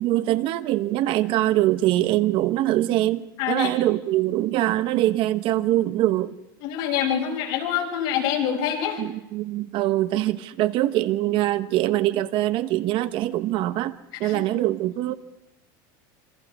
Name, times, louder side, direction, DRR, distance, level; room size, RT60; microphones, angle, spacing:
voice 1, 0.0-6.4 9.0-15.1, right 15 dB, 50° right, 12 dB, 1.0 m, -23 dB
voice 2, 6.6-9.0 14.2-14.4, left 9 dB, 75° left, -1 dB, 6.8 m, -25 dB
27.0 x 24.0 x 4.8 m, 0.88 s
supercardioid pair, 135°, 11 cm